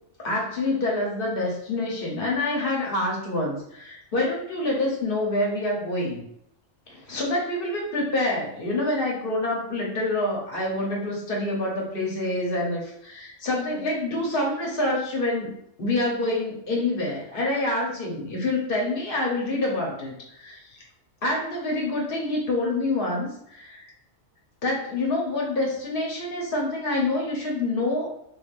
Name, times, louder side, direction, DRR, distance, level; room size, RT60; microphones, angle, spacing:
voice 1, 0.2-6.2 6.9-20.8 21.2-23.9 24.6-28.1, left 2 dB, 55° left, -2 dB, 1.0 m, -27 dB
3.2 x 2.5 x 2.5 m, 0.76 s
omnidirectional pair, 1.2 m